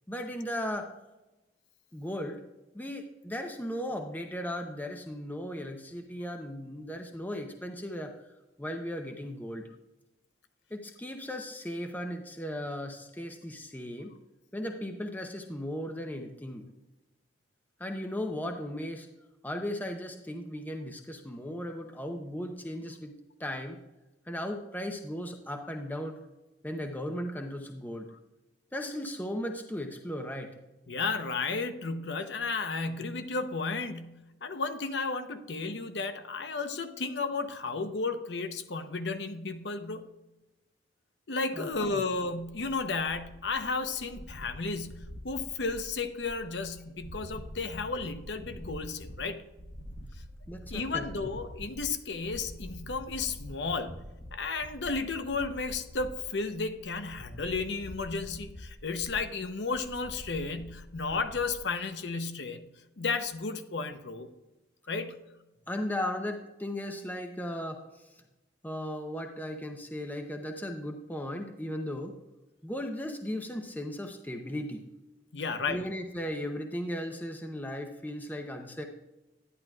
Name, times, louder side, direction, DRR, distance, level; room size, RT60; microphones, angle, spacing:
voice 1, 0.1-0.9 1.9-2.4 2.7-8.3 8.6-9.7 10.7-14.1 14.5-16.7 17.8-19.1 19.4-23.1 23.4-23.8 24.3-26.2 26.6-28.1 28.7-30.5 41.5-42.0 50.5-51.1 65.7-68.2 68.6-72.2 72.6-74.8 75.7-78.8, left 1 dB, 10° left, 4 dB, 0.7 m, -36 dB
voice 2, 30.9-40.1 41.3-49.4 50.7-54.0 54.3-62.6 63.0-64.3 64.9-65.2 75.3-75.8, left 4 dB, 75° left, 8 dB, 0.8 m, -33 dB
sound 1, 41.7-61.6, equal, 35° left, 1.2 m, -46 dB
11.0 x 10.5 x 2.4 m, 1.0 s
head